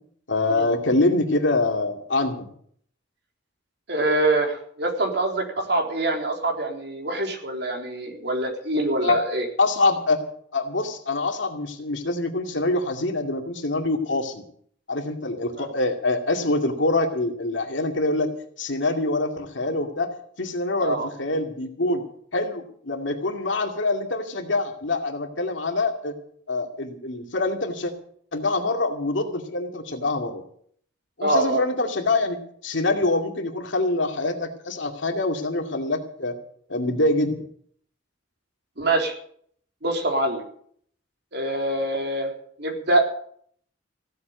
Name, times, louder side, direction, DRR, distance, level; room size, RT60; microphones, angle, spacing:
voice 1, 0.3-2.5 9.0-9.2 9.6-10.2 10.5-14.4 14.9-18.3 18.6-20.1 20.4-22.0 22.3-26.1 26.5-27.9 28.3-30.4 31.2-36.3 36.7-37.4, left 2 dB, 70° left, 4 dB, 2.3 m, -25 dB
voice 2, 3.9-9.4 15.6-15.7 20.8-21.1 31.2-31.6 38.8-39.1 39.8-40.4 41.3-42.3 42.6-43.1, right 2 dB, 60° right, 2 dB, 3.7 m, -24 dB
16.0 x 7.9 x 9.2 m, 0.62 s
head